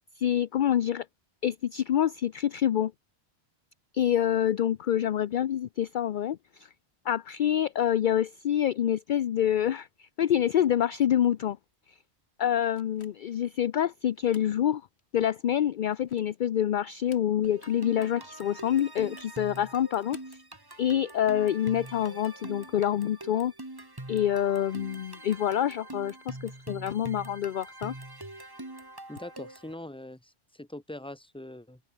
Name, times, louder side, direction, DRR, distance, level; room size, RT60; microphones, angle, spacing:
voice 1, 0.2-1.1 1.4-2.9 3.9-6.7 7.1-11.6 12.4-14.8 15.1-20.2 20.8-23.5 24.1-27.9, left 10 dB, 55° left, 0.6 m, -27 dB
sound 1, 12.8-13.4 14.1-14.6 15.0-15.1 15.8-16.4 16.9-17.7 18.0-18.1 19.0-19.4 19.9-20.4, left 4 dB, 75° left, 2.3 m, -58 dB
sound 2, 17.4-29.7, right 2 dB, 20° right, 2.0 m, -44 dB
voice 2, 29.1-31.8, left 1 dB, 5° left, 1.5 m, -42 dB
open air
omnidirectional pair, 1.1 m